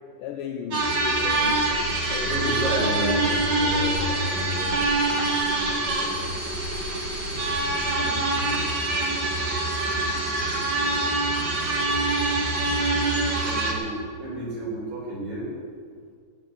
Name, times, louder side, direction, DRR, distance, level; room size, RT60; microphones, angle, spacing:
voice 1, 0.2-3.0 8.0-8.4, left 8 dB, 90° left, 3 dB, 1.9 m, -36 dB
sound 1, 0.7-13.7, right 2 dB, 90° right, 0.9 m, -25 dB
sound 2, 0.9-7.7, left 1 dB, 40° left, 3.6 m, -41 dB
voice 2, 2.3-6.1 6.5-6.6 7.3-7.4 13.2-15.6, right 1 dB, 45° right, -4 dB, 4.5 m, -33 dB
18.0 x 6.4 x 8.3 m, 2.1 s
omnidirectional pair, 4.7 m